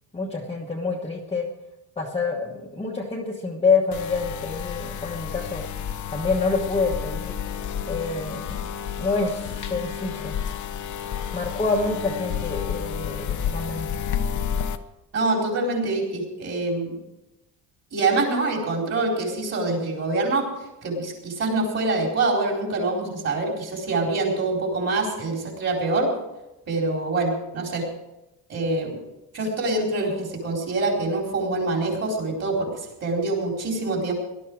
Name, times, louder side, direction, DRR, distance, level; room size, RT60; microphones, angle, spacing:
voice 1, 0.1-1.5 2.0-5.6 6.1-7.4 7.9-10.4 11.3-13.9, left 4 dB, 15° left, -3 dB, 1.2 m, -27 dB
sound 1, 3.9-14.8, left 8 dB, 45° left, 0.9 m, -31 dB
voice 2, 15.1-16.9 17.9-20.5 20.8-26.1 26.7-27.8 28.5-29.0 29.3-34.1, right 2 dB, 35° right, 0 dB, 4.4 m, -25 dB
18.0 x 12.5 x 4.8 m, 0.94 s
cardioid pair, 180°, 42 cm